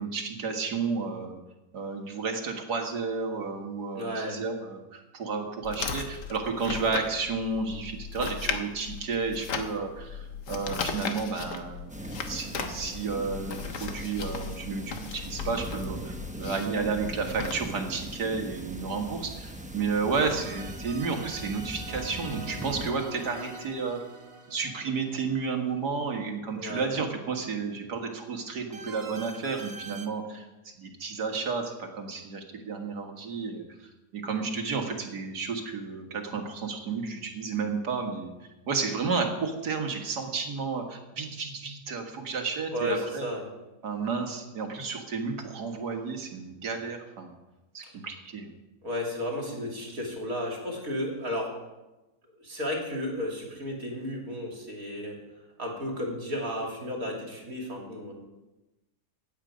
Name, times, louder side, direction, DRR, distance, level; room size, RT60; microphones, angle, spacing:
voice 1, 0.0-1.4 1.7-12.0 12.3-24.0 24.5-30.5 30.8-38.3 38.7-43.3 43.8-47.3 47.7-48.5, right 4 dB, 75° right, 3 dB, 2.2 m, -32 dB
voice 2, 3.9-4.4 26.5-26.9 42.7-43.5 48.8-51.5 52.3-55.2 55.6-58.1, left 1 dB, 55° right, -1 dB, 3.2 m, -33 dB
sound 1, 5.6-17.5, left 6 dB, 90° left, 1.7 m, -37 dB
sound 2, 11.9-22.9, right 1 dB, 5° right, 0.6 m, -40 dB
sound 3, 20.1-26.1 28.7-30.1, right 2 dB, 40° right, 1.3 m, -44 dB
15.5 x 9.1 x 5.1 m, 1.0 s
omnidirectional pair, 1.8 m